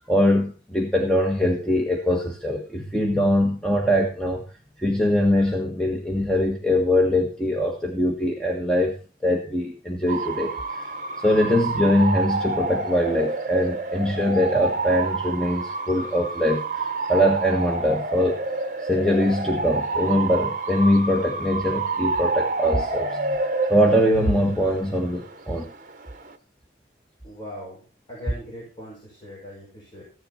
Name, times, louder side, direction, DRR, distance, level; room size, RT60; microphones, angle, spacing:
voice 1, 0.0-4.4 4.8-8.9 9.2-10.8 11.2-18.4 18.8-23.4 23.7-25.7, equal, 5° left, 1 dB, 1.4 m, -22 dB
Bark / Motor vehicle (road) / Siren, 10.1-26.3, right 3 dB, 45° right, 1.1 m, -29 dB
voice 2, 27.2-30.0, left 1 dB, 25° left, -5 dB, 5.9 m, -40 dB
15.5 x 10.5 x 4.2 m, 0.35 s
head